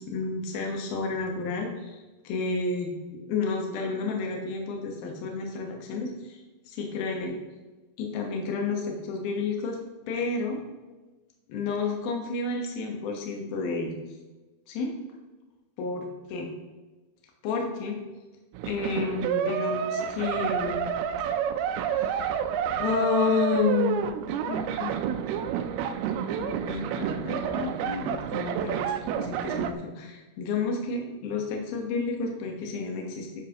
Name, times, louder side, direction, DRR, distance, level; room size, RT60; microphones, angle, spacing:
voice 1, 0.0-7.4 8.0-9.8 10.1-10.6 11.5-13.9 14.7-14.9 15.8-16.0 16.3-16.5 17.4-18.0 18.7-20.9 21.7-22.4 22.8-24.1 24.5-25.1 26.4-33.4, left 4 dB, 75° left, 1 dB, 3.0 m, -31 dB
sound 1, 18.5-29.7, right 8 dB, 85° right, 2.5 m, -29 dB
10.0 x 7.4 x 2.9 m, 1.2 s
omnidirectional pair, 4.5 m